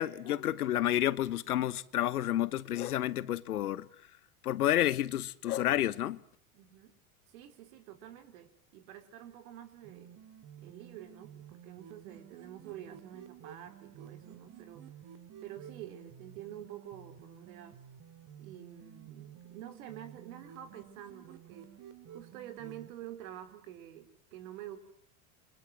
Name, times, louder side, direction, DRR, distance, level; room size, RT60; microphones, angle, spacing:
voice 1, 0.0-3.9 4.4-6.2, left 13 dB, 85° left, 1.2 m, -30 dB
voice 2, 6.5-6.9 7.3-10.1 10.6-14.9 15.4-17.8 18.4-21.7 22.1-24.8, right 11 dB, 70° right, 4.8 m, -48 dB
sound 1, 9.8-22.9, right 9 dB, 45° right, 2.9 m, -52 dB
28.0 x 25.5 x 7.8 m
hypercardioid pair, 95°, 44 cm